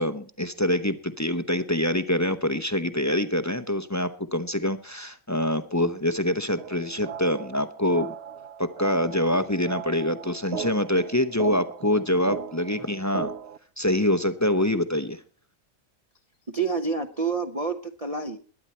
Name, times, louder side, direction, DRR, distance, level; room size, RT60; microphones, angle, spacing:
voice 1, 0.0-8.1 8.6-13.3 13.8-15.2, left 1 dB, 15° left, 11 dB, 0.7 m, -25 dB
sound 1, 6.6-13.6, right 7 dB, 55° right, 1.0 m, -37 dB
voice 2, 16.5-18.4, right 4 dB, 30° right, 4 dB, 0.8 m, -28 dB
21.0 x 9.9 x 4.4 m, 0.40 s
omnidirectional pair, 1.4 m